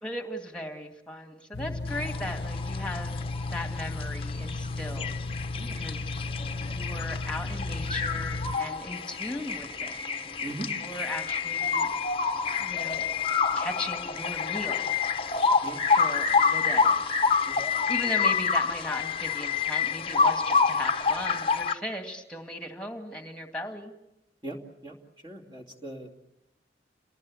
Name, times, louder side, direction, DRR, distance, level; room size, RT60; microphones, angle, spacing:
voice 1, 0.0-3.3 3.5-5.1 5.6-6.1 6.6-10.0 10.7-11.9 12.6-13.1 13.6-14.9 15.9-17.1 17.9-23.9, left 1 dB, 5° left, 5 dB, 2.1 m, -37 dB
sound 1, 1.5-8.6, left 2 dB, 70° left, 0.8 m, -34 dB
sound 2, 1.9-21.7, left 5 dB, 30° left, 0.9 m, -28 dB
voice 2, 5.6-5.9 10.4-10.7 15.6-15.9 17.4-17.7 18.0-18.2 24.4-24.6 24.8-25.0 25.2-26.1, right 1 dB, 25° right, 1 dB, 2.5 m, -40 dB
28.5 x 19.0 x 8.4 m, 0.91 s
head